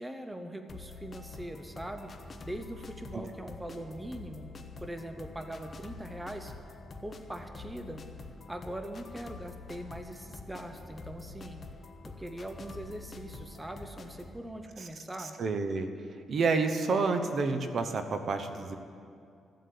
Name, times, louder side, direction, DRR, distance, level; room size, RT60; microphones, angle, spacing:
voice 1, 0.0-2.1 2.4-4.5 4.8-6.5 7.0-8.0 8.5-11.6 12.0-15.4, right 1 dB, 10° right, 6 dB, 0.8 m, -41 dB
sound 1, 0.7-14.4, left 3 dB, 35° left, 1.0 m, -47 dB
voice 2, 15.4-15.9 16.3-18.8, right 4 dB, 50° right, 7 dB, 0.9 m, -29 dB
14.0 x 7.8 x 8.5 m, 2.4 s
cardioid pair, 125°, 0 cm